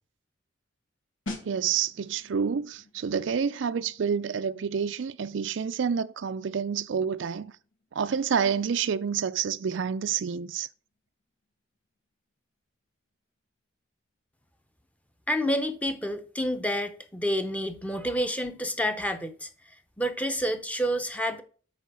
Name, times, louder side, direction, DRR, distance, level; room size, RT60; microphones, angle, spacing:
sound 1, 1.3-11.8 12.0-12.3, left 2 dB, 75° left, 2.4 m, -48 dB
voice 1, 1.4-7.5 7.9-10.7, right 7 dB, 70° right, 0.4 m, -28 dB
voice 2, 15.3-19.5 20.0-21.4, equal, 5° left, 0.8 m, -29 dB
8.2 x 5.0 x 6.2 m
head